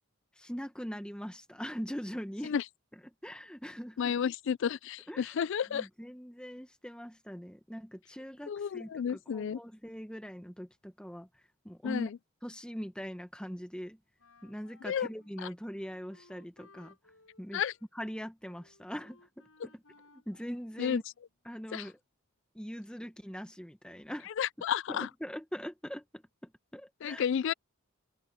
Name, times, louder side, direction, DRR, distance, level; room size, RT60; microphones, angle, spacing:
voice 1, 0.4-2.5 3.2-4.1 5.1-5.4 5.7-11.3 11.6-12.1 12.4-14.0 14.4-16.9 17.4-17.6 17.9-19.8 20.3-21.0 21.4-22.0 22.5-24.3 24.9-27.2, equal, 5° left, 1.3 m, -42 dB
voice 2, 4.0-5.9 8.5-9.6 11.8-12.2 14.8-15.1 17.5-17.7 20.8-21.0 21.7-21.9 24.4-25.1 27.0-27.5, left 8 dB, 55° left, 0.3 m, -31 dB
Wind instrument woodwind instrument, 14.2-21.4, left 3 dB, 80° left, 7.3 m, -63 dB
open air
head